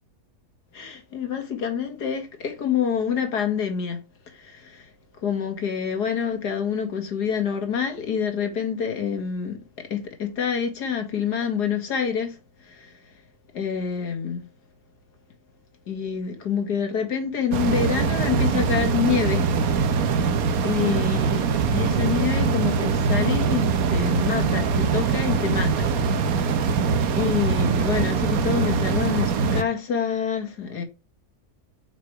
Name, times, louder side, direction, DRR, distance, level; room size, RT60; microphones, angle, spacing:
voice 1, 0.7-13.2 13.5-14.5 15.9-19.6 19.9-30.8, left 7 dB, 90° left, 2.4 m, -27 dB
sound 1, 17.5-29.6, right 5 dB, 65° right, 1.3 m, -22 dB
8.1 x 6.0 x 4.8 m
omnidirectional pair, 1.7 m